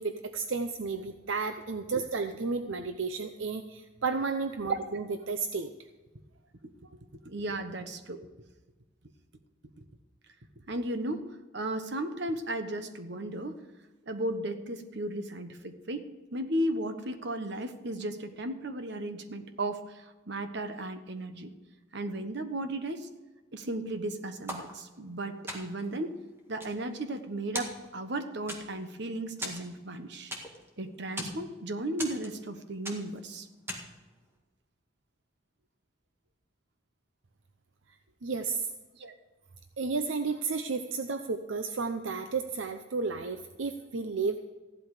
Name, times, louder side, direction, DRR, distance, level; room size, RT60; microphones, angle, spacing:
voice 1, 0.0-5.7 38.2-38.7 39.8-44.4, right 4 dB, 80° right, 8 dB, 0.7 m, -32 dB
voice 2, 7.2-8.2 9.8-9.9 10.7-13.6 14.1-16.0 16.3-21.5 21.9-23.1 23.5-26.1 26.5-30.3 30.8-33.5 38.9-39.1, right 1 dB, 60° right, 8 dB, 1.2 m, -35 dB
sound 1, 24.5-25.1 25.5-25.9 26.4-27.3 27.5-28.1 28.5-28.9 29.4-30.7 31.0-31.4 32.0-32.5 32.8-33.2 33.7-34.0, equal, 10° right, 1.9 m, -39 dB
15.0 x 11.5 x 4.9 m, 1.2 s
head